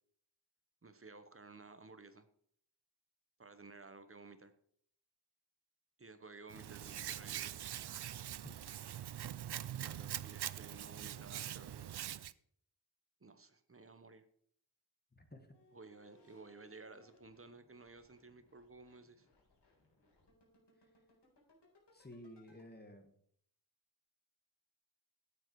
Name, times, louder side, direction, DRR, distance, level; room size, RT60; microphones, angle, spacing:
voice 1, 0.8-2.3 3.4-4.5 6.0-7.6 9.8-11.9 13.2-14.3 15.7-19.3, right 3 dB, 30° right, 10 dB, 1.0 m, -55 dB
Hands, 6.5-12.3, right 11 dB, 70° right, 0.5 m, -43 dB
voice 2, 15.1-15.5 21.9-23.1, left 1 dB, 25° left, 5 dB, 1.8 m, -53 dB
sound 1, 15.5-22.6, left 2 dB, 85° left, 4.3 m, -69 dB
12.5 x 9.2 x 4.7 m, 0.65 s
wide cardioid pair, 125°, 41 cm